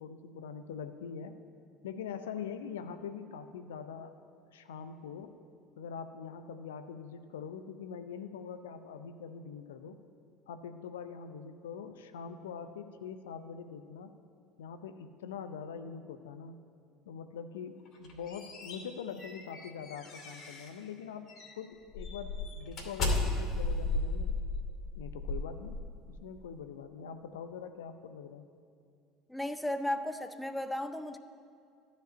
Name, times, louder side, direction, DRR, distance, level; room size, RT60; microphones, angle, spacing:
voice 1, 0.0-1.4 1.8-4.2 4.5-5.3 5.8-10.0 10.5-14.1 14.6-16.6 17.0-24.3 24.9-25.8 26.2-28.5, left 6 dB, 70° left, 10 dB, 0.5 m, -43 dB
sound 1, 17.9-20.8 21.3-21.5 21.9-26.2, left 2 dB, 45° left, 2.6 m, -35 dB
voice 2, 29.3-31.2, left 1 dB, 5° left, 10 dB, 0.6 m, -35 dB
13.0 x 5.2 x 8.7 m, 2.3 s
figure-of-eight pair, 65°, 0 cm